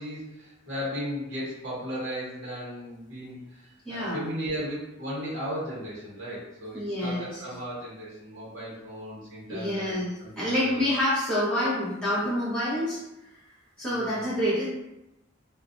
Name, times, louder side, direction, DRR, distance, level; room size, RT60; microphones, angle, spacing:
voice 1, 0.0-10.8 13.9-14.4, equal, 60° right, -7 dB, 0.8 m, -36 dB
voice 2, 3.8-4.2 6.7-7.4 9.5-13.0 13.8-14.7, left 1 dB, 5° left, -11 dB, 0.8 m, -27 dB
2.4 x 2.1 x 2.4 m, 0.91 s
head